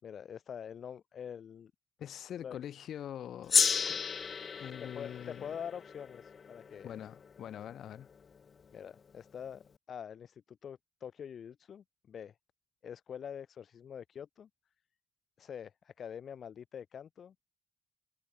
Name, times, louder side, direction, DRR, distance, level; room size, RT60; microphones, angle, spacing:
voice 1, 0.0-1.7 2.4-2.6 4.8-6.9 8.7-9.6 9.9-12.3 12.8-14.5 15.4-17.3, left 8 dB, 60° left, 3.2 m, -45 dB
voice 2, 2.0-3.6 3.9-4.0 4.6-5.6 6.8-8.1, left 10 dB, 80° left, 1.8 m, -44 dB
Gong, 3.5-8.2, left 6 dB, 45° left, 0.3 m, -33 dB
cardioid pair, 115°, 0 cm